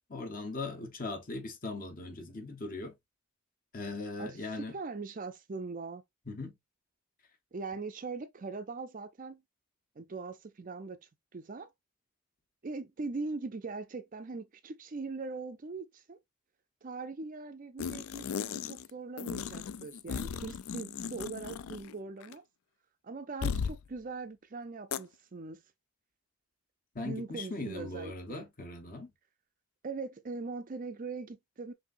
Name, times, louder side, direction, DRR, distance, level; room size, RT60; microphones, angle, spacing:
voice 1, 0.1-2.9 3.7-4.7 6.3-6.6 26.9-29.1, left 3 dB, 40° left, 1.0 m, -39 dB
voice 2, 4.2-6.0 7.5-9.4 10.0-11.0 11.3-11.7 12.6-16.2 16.8-22.4 23.0-25.6 27.0-28.5 29.8-31.7, right 3 dB, 35° right, 0.5 m, -41 dB
sound 1, 17.8-18.9 19.2-22.0 22.2-22.3 23.4-23.8 24.9-25.0, left 7 dB, 70° left, 0.4 m, -36 dB
5.9 x 2.7 x 2.5 m
head